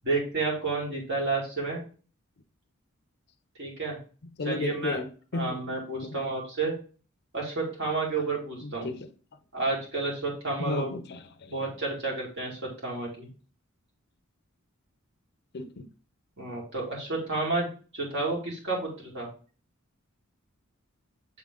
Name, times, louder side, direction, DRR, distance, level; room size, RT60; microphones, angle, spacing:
voice 1, 0.0-1.8 3.6-4.0 4.4-5.0 5.3-6.7 7.3-8.9 9.5-10.9 11.5-13.3 16.4-17.7 17.9-19.3, right 3 dB, 55° right, 2.3 m, -30 dB
voice 2, 4.4-5.6 6.0-6.2 8.6-9.1 10.6-11.6 15.5-15.9, left 3 dB, 50° left, 0.5 m, -34 dB
7.2 x 3.6 x 3.7 m
head